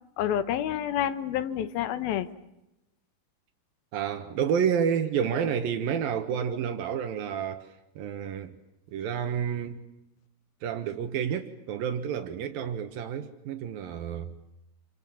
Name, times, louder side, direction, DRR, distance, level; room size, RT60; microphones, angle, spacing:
voice 1, 0.2-2.3, left 10 dB, 90° left, 3.1 m, -28 dB
voice 2, 3.9-8.6 8.9-9.8 10.6-14.3, right 8 dB, 80° right, 3.1 m, -30 dB
28.5 x 25.5 x 7.1 m
omnidirectional pair, 4.1 m